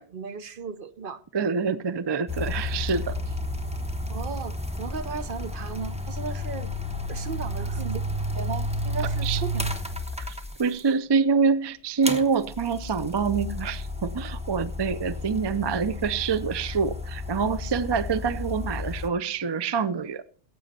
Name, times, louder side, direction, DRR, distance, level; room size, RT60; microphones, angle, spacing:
voice 1, 0.0-1.2 4.1-6.7 7.1-8.0 8.3-9.8, right 5 dB, 60° right, 0.9 m, -35 dB
voice 2, 1.3-3.2 9.2-9.4 10.2-20.2, right 5 dB, 35° right, 0.4 m, -26 dB
sound 1, 2.3-10.9 12.0-19.1, left 1 dB, 5° right, 1.0 m, -32 dB
15.0 x 8.4 x 4.2 m
omnidirectional pair, 1.1 m